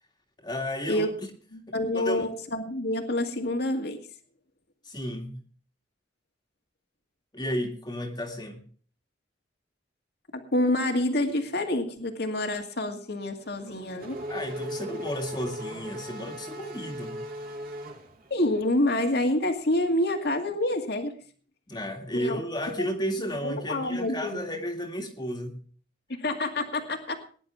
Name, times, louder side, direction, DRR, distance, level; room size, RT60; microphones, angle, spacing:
voice 1, 0.4-1.1 1.9-2.3 4.8-5.4 7.3-8.6 14.3-17.2 21.7-25.6, equal, 25° left, 2 dB, 2.1 m, -33 dB
voice 2, 1.5-4.0 10.5-14.2 18.3-21.1 22.1-22.4 23.4-24.4 26.2-27.3, left 1 dB, 60° left, 4 dB, 2.1 m, -27 dB
Race car auto racing / Accelerating revving vroom, 13.4-18.7, equal, 50° right, 2.9 m, -38 dB
20.5 x 10.5 x 3.6 m, 0.44 s
head